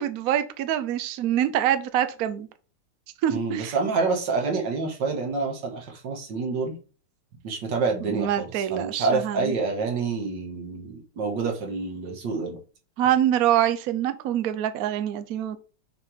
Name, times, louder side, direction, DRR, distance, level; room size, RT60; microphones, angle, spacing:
voice 1, 0.0-2.5 3.2-3.7 8.0-9.6 13.0-15.6, right 11 dB, 80° right, 0.8 m, -25 dB
voice 2, 3.3-6.7 7.4-12.6, right 4 dB, 60° right, 2.0 m, -27 dB
6.6 x 3.7 x 4.5 m
omnidirectional pair, 2.4 m